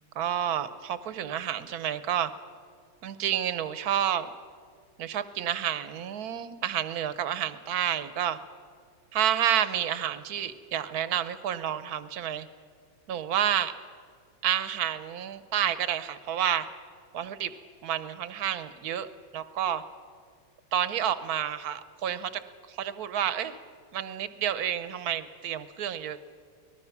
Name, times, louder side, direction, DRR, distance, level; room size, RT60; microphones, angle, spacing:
voice 1, 0.2-2.3 3.0-4.3 5.0-8.4 9.1-12.5 13.1-13.7 14.4-16.7 17.1-17.5 17.8-19.1 19.3-19.8 20.7-22.4 22.7-23.6 23.9-26.2, right 10 dB, 60° right, 13 dB, 1.1 m, -29 dB
24.5 x 19.0 x 5.9 m, 2.1 s
omnidirectional pair, 2.4 m